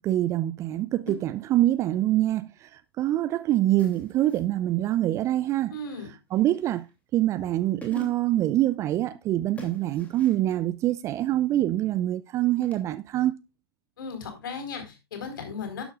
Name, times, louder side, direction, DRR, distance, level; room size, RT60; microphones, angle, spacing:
voice 1, 0.0-2.7 3.0-5.7 6.3-6.8 7.1-13.3, right 14 dB, 20° right, 0.5 m, -25 dB
sound 1, 1.1-1.7 3.8-4.5 6.3-6.9 7.5-7.6 7.8-8.4 9.6-10.6 12.6-12.8, left 1 dB, 10° left, 2.9 m, -44 dB
voice 2, 5.7-6.1 14.0-15.8, left 4 dB, 55° left, 4.6 m, -36 dB
12.0 x 11.0 x 2.5 m
figure-of-eight pair, 110°, 13 cm